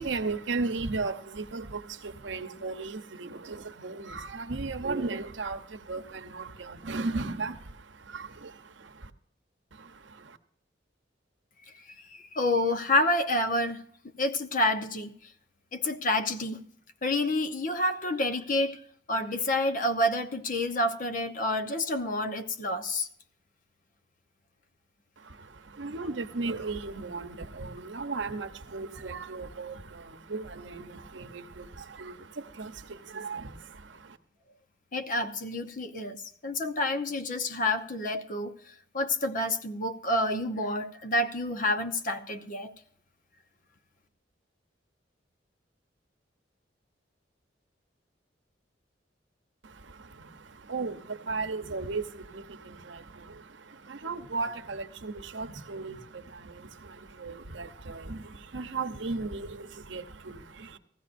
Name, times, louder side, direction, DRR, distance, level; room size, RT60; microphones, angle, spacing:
voice 1, 0.0-9.1 9.7-10.4 25.2-34.2 49.6-60.8, right 3 dB, 70° right, 0.9 m, -36 dB
voice 2, 11.8-13.8 14.2-15.3 15.7-16.6 17.0-23.1 34.9-42.7, left 1 dB, 45° left, 0.9 m, -29 dB
18.5 x 15.0 x 2.6 m
head